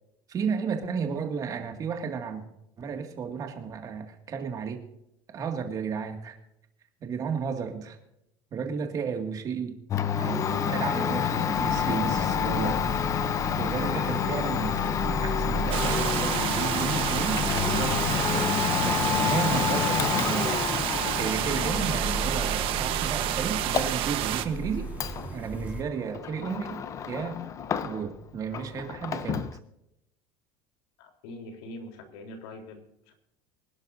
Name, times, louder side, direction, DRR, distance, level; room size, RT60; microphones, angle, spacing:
voice 1, 0.3-2.4 2.8-4.8 5.3-6.4 7.0-8.0 8.5-9.8 10.1-12.8 13.6-14.8 15.2-18.5 18.8-20.7 21.2-24.9 25.3-27.4 27.8-29.5, right 6 dB, 30° right, 4 dB, 2.1 m, -33 dB
Domestic sounds home sounds, 9.9-28.2 28.5-29.6, left 8 dB, 25° left, 0.7 m, -29 dB
sound 1, 11.5-25.8, right 3 dB, 15° right, 2.3 m, -37 dB
sound 2, 15.7-24.5, right 13 dB, 50° right, 1.1 m, -29 dB
voice 2, 31.0-33.1, left 1 dB, 80° left, 4 dB, 3.7 m, -43 dB
25.5 x 11.5 x 2.7 m, 0.82 s
cardioid pair, 160°, 12 cm